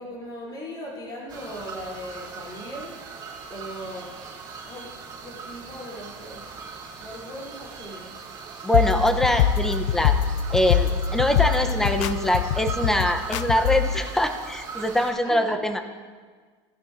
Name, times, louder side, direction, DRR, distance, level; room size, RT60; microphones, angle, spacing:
voice 1, 0.0-3.0 3.5-4.1 4.7-4.9 5.2-6.7 7.0-8.1 15.2-15.5, equal, 30° left, -4 dB, 3.7 m, -38 dB
sound 1, 1.3-15.1, right 5 dB, 30° right, 3.0 m, -40 dB
voice 2, 8.6-10.2 10.5-15.9, equal, 5° left, 6 dB, 0.8 m, -23 dB
sound 2, 8.7-14.0, left 9 dB, 85° left, 0.5 m, -24 dB
17.5 x 12.5 x 2.7 m, 1.6 s
supercardioid pair, 140°, 15 cm